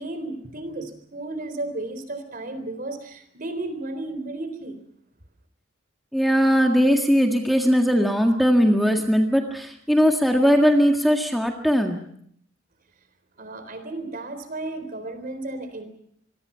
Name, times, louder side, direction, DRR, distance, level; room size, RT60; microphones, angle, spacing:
voice 1, 0.0-4.8 13.4-15.8, right 2 dB, 45° right, 10 dB, 3.9 m, -33 dB
voice 2, 6.1-12.0, equal, ahead, 2 dB, 1.8 m, -19 dB
26.0 x 22.5 x 5.7 m, 0.67 s
head